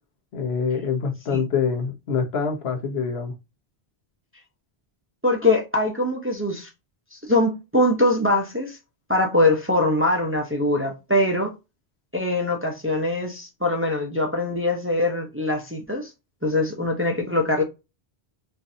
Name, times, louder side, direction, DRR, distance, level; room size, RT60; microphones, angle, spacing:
voice 1, 0.3-3.3, left 6 dB, 80° left, 1.1 m, -25 dB
voice 2, 5.2-6.7 7.1-8.8 9.1-11.5 12.1-16.1 16.4-17.6, left 1 dB, 15° right, 0.6 m, -22 dB
4.4 x 2.6 x 2.7 m
omnidirectional pair, 1.1 m